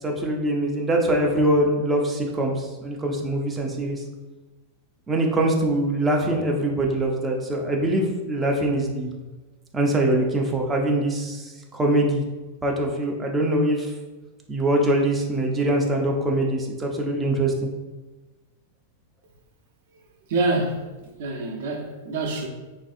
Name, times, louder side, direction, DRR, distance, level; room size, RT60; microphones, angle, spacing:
voice 1, 0.0-4.0 5.1-9.1 9.7-12.2 12.6-13.9 14.5-17.5, right 1 dB, 15° right, 0.5 m, -23 dB
voice 2, 20.3-20.9 21.2-22.5, right 2 dB, 65° right, 0.5 m, -26 dB
3.2 x 2.5 x 2.5 m
hypercardioid pair, 115°, 0 cm